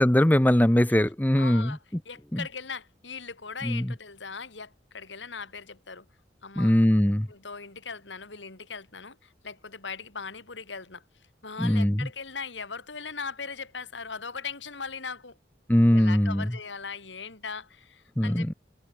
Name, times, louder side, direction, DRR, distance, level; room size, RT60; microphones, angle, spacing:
voice 1, 0.0-1.8 2.3-2.4 3.6-3.9 6.6-7.3 11.6-12.1 15.7-16.5 18.2-18.5, equal, 10° left, 0.7 m, -21 dB
voice 2, 1.3-1.8 2.0-6.1 6.4-6.7 7.3-11.0 11.4-15.4 15.9-18.5, left 5 dB, 85° left, 2.9 m, -39 dB
head